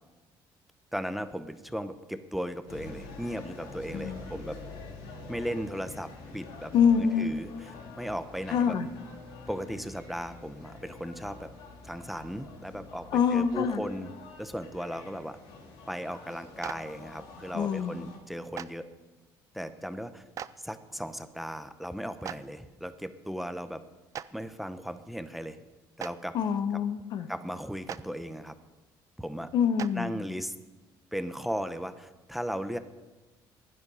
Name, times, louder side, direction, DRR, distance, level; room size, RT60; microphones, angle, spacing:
voice 1, 0.9-4.6 5.3-6.7 7.0-8.8 9.5-11.5 11.8-14.1 14.4-15.4 15.9-18.9 19.5-20.2 20.6-23.8 24.3-25.6 26.0-26.4 27.3-28.5 29.2-29.5 29.9-30.5 31.1-32.8, equal, ahead, 11 dB, 0.7 m, -36 dB
sound 1, 2.7-18.2, left 3 dB, 80° left, 2.9 m, -47 dB
voice 2, 6.7-7.3 8.5-8.9 13.1-13.8 17.5-17.9 26.3-27.3 29.5-30.1, left 7 dB, 55° left, 11 dB, 1.0 m, -25 dB
Clapping, 16.6-16.7 18.5-18.6 20.3-20.5 22.2-22.4 24.1-24.2 26.0-26.1 27.9-28.0 29.8-29.9, right 9 dB, 40° right, 0.5 m, -36 dB
15.5 x 11.0 x 5.5 m, 1.2 s
cardioid pair, 130°, 8 cm